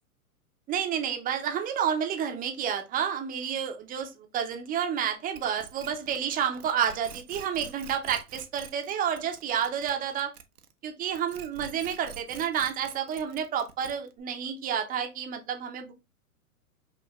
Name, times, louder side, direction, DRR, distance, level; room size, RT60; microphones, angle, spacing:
voice 1, 0.7-10.3 10.8-15.9, right 8 dB, 20° right, 0.8 m, -30 dB
sound 1, 5.3-10.8 11.1-14.2, right 7 dB, 85° right, 0.9 m, -46 dB
5.7 x 2.6 x 2.9 m
hypercardioid pair, 115°, 44 cm